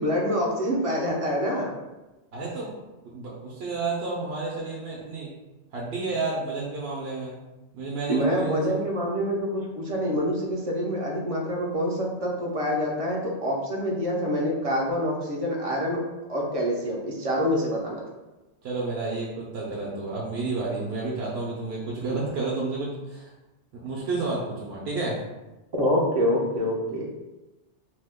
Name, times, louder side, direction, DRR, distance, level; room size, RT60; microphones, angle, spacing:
voice 1, 0.0-1.7 8.1-16.0 16.3-18.0 25.7-27.1, equal, 45° right, -2 dB, 0.5 m, -26 dB
voice 2, 2.3-2.7 3.0-5.3 5.7-7.4 7.7-8.8 18.6-23.3 23.8-25.2, right 3 dB, 70° right, -4 dB, 0.8 m, -31 dB
2.8 x 2.2 x 3.4 m, 1.0 s
omnidirectional pair, 1.2 m